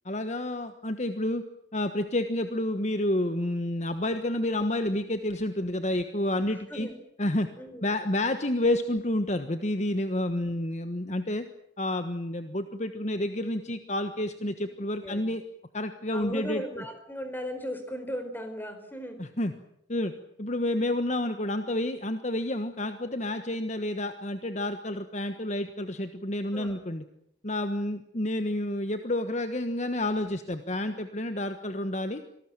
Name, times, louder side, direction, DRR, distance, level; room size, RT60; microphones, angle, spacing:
voice 1, 0.0-1.4 1.7-6.9 7.2-7.5 7.8-11.5 11.8-15.4 15.7-16.8 19.2-19.5 19.9-20.1 20.4-27.0 27.4-32.2, left 1 dB, 40° left, 9 dB, 1.3 m, -29 dB
voice 2, 7.6-7.9 15.0-15.3 16.1-19.2 26.5-26.8, equal, 10° left, 7 dB, 4.7 m, -37 dB
26.5 x 19.0 x 9.0 m, 0.75 s
head